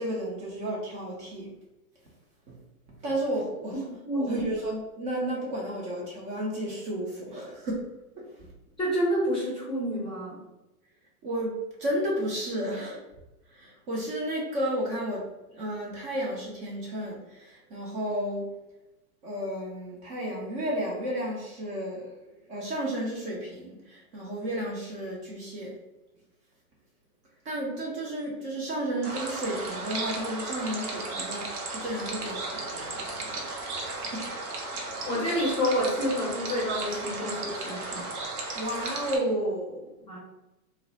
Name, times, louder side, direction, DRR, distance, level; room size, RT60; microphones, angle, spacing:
voice 1, 0.0-1.5 2.5-2.6 3.0-3.9 4.1-7.8 8.2-8.5 11.2-13.0 13.5-18.5 19.2-22.2 22.5-25.8 27.4-33.5 33.8-34.3 38.5-39.9, right 1 dB, 35° right, -3 dB, 0.6 m, -32 dB
voice 2, 4.1-4.4 8.8-10.4 35.1-38.0 40.1-40.2, equal, 10° left, -6 dB, 0.6 m, -28 dB
sound 1, 29.0-39.2, right 2 dB, 75° right, 0.8 m, -35 dB
2.2 x 2.0 x 2.7 m, 0.97 s
hypercardioid pair, 130°, 45 cm